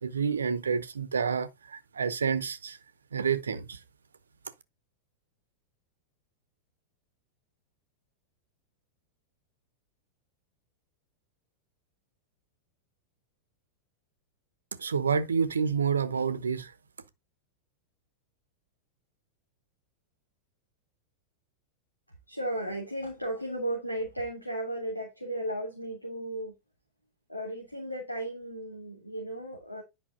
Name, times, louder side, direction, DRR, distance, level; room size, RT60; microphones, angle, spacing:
voice 1, 0.0-2.8 3.1-3.8 14.8-16.7, right 6 dB, 70° right, 0.9 m, -29 dB
voice 2, 22.3-26.5 27.3-29.8, right 1 dB, 90° left, 2.8 m, -35 dB
10.0 x 5.7 x 3.8 m
figure-of-eight pair, 90°, 0 cm